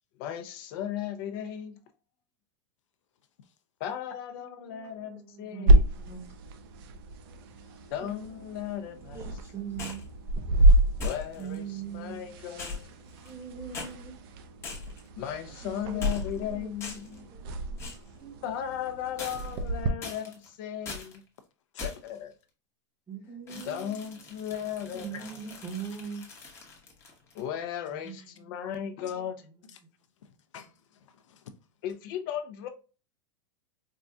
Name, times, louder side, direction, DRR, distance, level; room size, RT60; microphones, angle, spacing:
voice 1, 0.2-1.8 3.8-5.8 7.9-9.2 11.0-12.8 15.2-17.3 18.4-21.2 21.8-22.3 23.5-25.3 27.3-29.4 31.8-32.7, left 10 dB, 45° left, 0.6 m, -36 dB
voice 2, 4.4-6.3 8.0-10.0 11.3-14.5 15.6-18.7 23.1-26.2 27.9-29.9, right 7 dB, 15° right, 0.9 m, -44 dB
sound 1, 5.7-19.9, right 1 dB, 50° right, 0.5 m, -28 dB
sound 2, 9.8-10.1 11.0-11.6 12.6-13.4 13.7-13.9 14.6-15.1 16.0-16.4 16.8-17.2 17.8-18.1 19.2-19.7 20.0-20.5 20.8-21.2 21.8-22.2 23.5-27.4, left 4 dB, 15° left, 0.9 m, -39 dB
voice 3, 30.5-31.6, left 7 dB, 90° left, 0.7 m, -49 dB
4.6 x 2.6 x 2.3 m
supercardioid pair, 155°, 15 cm